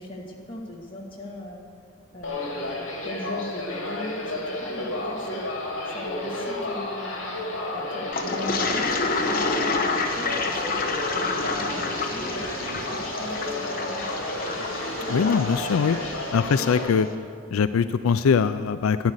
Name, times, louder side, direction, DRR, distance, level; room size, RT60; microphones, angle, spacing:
voice 1, 0.0-1.6 2.1-5.5 5.9-7.4 7.7-12.5 12.9-14.3, left 1 dB, 25° left, -2 dB, 1.9 m, -39 dB
sound 1, 2.2-16.9, left 1 dB, 70° left, 2.6 m, -31 dB
Toilet flush, 8.1-16.7, left 4 dB, 45° left, 1.0 m, -29 dB
Ocean / Boat Water vehicle, 8.5-16.3, right 3 dB, 90° right, 1.2 m, -41 dB
voice 2, 15.1-16.0 16.3-17.1 17.5-19.1, left 6 dB, 85° left, 13 dB, 0.4 m, -22 dB
11.5 x 9.6 x 8.1 m, 2.3 s
head